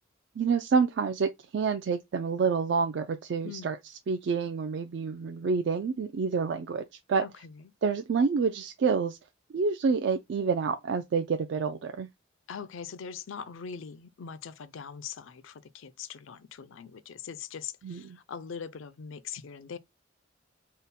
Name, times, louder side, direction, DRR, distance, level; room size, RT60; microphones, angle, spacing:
voice 1, 0.4-3.8 4.1-6.8 7.1-7.2 7.8-9.2 9.5-12.1 17.8-18.2, right 5 dB, 60° right, 0.3 m, -28 dB
voice 2, 7.2-7.7 12.5-19.8, left 7 dB, 80° left, 0.4 m, -42 dB
3.7 x 2.1 x 4.0 m
head